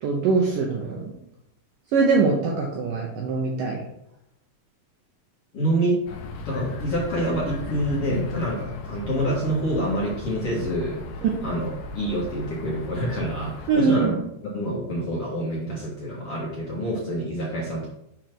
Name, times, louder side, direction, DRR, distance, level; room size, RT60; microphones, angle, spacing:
voice 1, 0.0-1.2 1.9-3.8 11.2-11.3 13.7-14.2, right 4 dB, 75° right, 0 dB, 2.0 m, -22 dB
voice 2, 5.5-6.0 6.5-11.7 11.9-14.2 14.5-17.9, right 1 dB, 50° left, -6 dB, 1.9 m, -27 dB
sound 1, 6.1-13.8, left 3 dB, 75° left, 2.0 m, -36 dB
7.2 x 4.5 x 6.0 m, 0.80 s
omnidirectional pair, 4.8 m